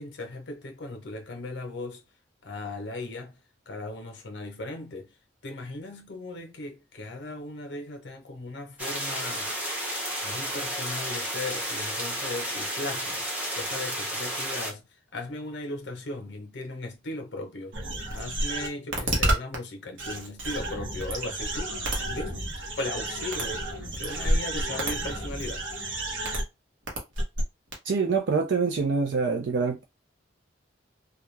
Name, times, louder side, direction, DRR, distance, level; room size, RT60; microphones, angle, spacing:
voice 1, 0.0-2.0 2.4-3.4 3.7-5.1 5.4-9.5 10.2-17.8 18.1-22.4 22.8-25.6, left 2 dB, 65° left, 0.7 m, -37 dB
sound 1, 8.8-14.7, equal, 10° right, 0.6 m, -32 dB
sound 2, 17.7-19.6 20.0-26.4 26.9-27.4 27.7-27.8, right 1 dB, 85° right, 0.9 m, -30 dB
voice 2, 27.9-29.8, right 4 dB, 70° right, 0.4 m, -25 dB
2.3 x 2.2 x 3.1 m
head